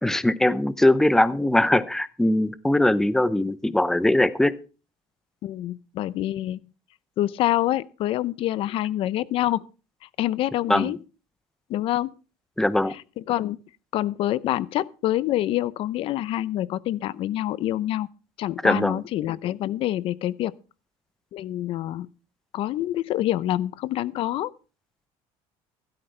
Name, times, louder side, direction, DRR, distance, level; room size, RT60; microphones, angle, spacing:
voice 1, 0.0-4.6 10.7-10.9 12.6-13.0 18.6-19.0, left 1 dB, 5° left, 0.7 m, -21 dB
voice 2, 5.4-6.6 7.2-9.6 10.2-11.0 11.7-12.1 12.9-13.6 13.9-18.1 18.4-20.5 21.3-22.1 22.5-24.5, left 14 dB, 55° left, 0.7 m, -26 dB
16.0 x 13.0 x 3.4 m
cardioid pair, 145°, 11 cm